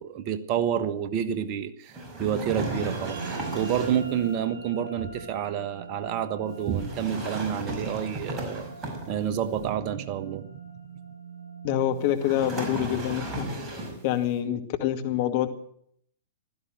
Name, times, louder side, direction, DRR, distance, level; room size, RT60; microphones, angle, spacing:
voice 1, 0.0-3.2 3.5-8.7 9.1-10.5, right 9 dB, 40° right, 11 dB, 1.4 m, -29 dB
sound 1, 1.9-4.2 6.7-9.4 12.2-14.1, right 1 dB, 20° right, 5.6 m, -35 dB
sound 2, 2.5-13.1, right 5 dB, 70° right, 7.2 m, -42 dB
voice 2, 11.6-13.5 14.0-15.5, left 11 dB, 45° left, 8 dB, 2.2 m, -26 dB
16.0 x 13.5 x 6.5 m, 0.66 s
figure-of-eight pair, 110°, 0 cm